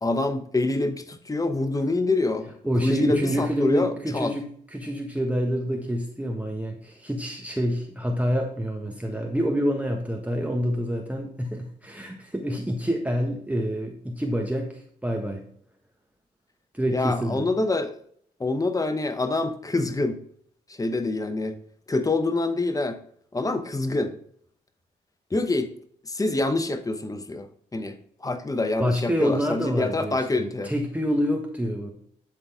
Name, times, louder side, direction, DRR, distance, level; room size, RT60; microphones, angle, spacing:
voice 1, 0.0-2.5 2.8-4.3 16.9-17.9 18.4-20.2 20.7-21.6 21.9-23.0 23.3-24.1 25.3-25.7 26.1-30.7, left 2 dB, 20° left, 9 dB, 0.9 m, -26 dB
voice 2, 2.6-4.4 4.7-15.4 16.7-17.5 28.8-31.9, equal, 10° right, 1 dB, 1.4 m, -27 dB
11.5 x 4.0 x 3.6 m, 0.63 s
supercardioid pair, 55°, 18 cm